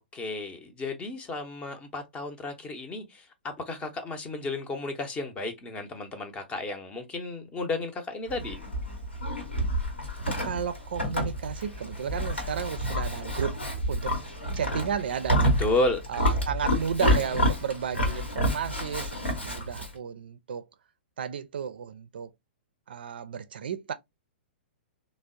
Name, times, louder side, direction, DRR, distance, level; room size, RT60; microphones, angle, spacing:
voice 1, 0.1-8.6 15.6-16.0, left 2 dB, 20° left, 0.7 m, -32 dB
Livestock farm animals working animals, 8.3-19.9, equal, 85° left, 1.0 m, -29 dB
voice 2, 10.3-13.6 13.9-14.2 14.6-15.5 16.1-20.7 21.2-22.3 22.9-23.9, right 7 dB, 60° right, 0.4 m, -33 dB
3.3 x 2.0 x 2.5 m
figure-of-eight pair, 110°, 6 cm